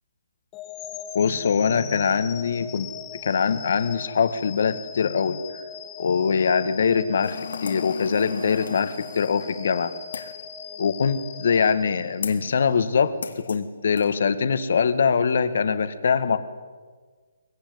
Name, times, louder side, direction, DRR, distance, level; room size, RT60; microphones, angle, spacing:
sound 1, 0.5-12.6, left 8 dB, 15° left, 2.1 m, -40 dB
voice 1, 1.1-2.9 3.2-5.6 6.0-10.3 10.8-16.4, left 6 dB, 60° left, 10 dB, 1.8 m, -23 dB
sound 2, 7.2-10.4 12.2-12.5 13.2-13.6 14.0-14.1, left 5 dB, 85° left, 2.6 m, -37 dB
23.0 x 21.0 x 9.5 m, 1.5 s
hypercardioid pair, 165°, 0 cm